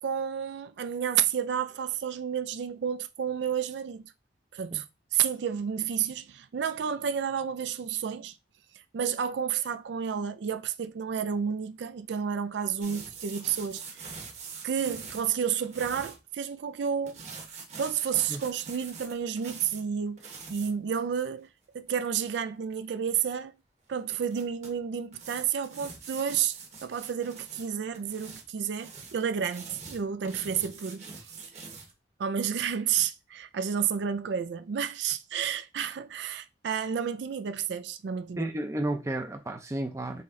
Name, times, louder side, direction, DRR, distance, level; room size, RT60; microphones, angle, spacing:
voice 1, 0.0-4.1 4.5-4.8 5.1-8.3 8.9-14.1 14.6-17.2 17.8-21.5 21.7-23.5 23.9-31.3 32.2-38.5, right 8 dB, 75° right, 0.4 m, -31 dB
sound 1, 12.8-16.2 17.1-19.8 20.2-20.7 23.1-23.2 24.1-24.7 25.1-27.7 27.9-31.9, right 5 dB, 40° right, 1.0 m, -44 dB
voice 2, 38.4-40.2, right 1 dB, 15° right, 0.5 m, -32 dB
4.2 x 3.1 x 3.7 m
head